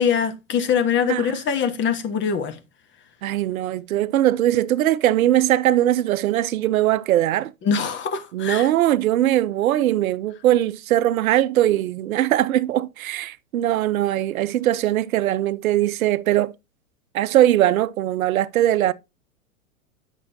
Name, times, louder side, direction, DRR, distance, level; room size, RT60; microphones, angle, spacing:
voice 1, 0.0-2.6 7.6-8.7, left 7 dB, 25° left, 1.2 m, -23 dB
voice 2, 3.2-7.5 8.3-16.5 17.1-18.9, right 13 dB, 75° right, 0.6 m, -20 dB
8.5 x 6.3 x 2.6 m
hypercardioid pair, 105°, 42 cm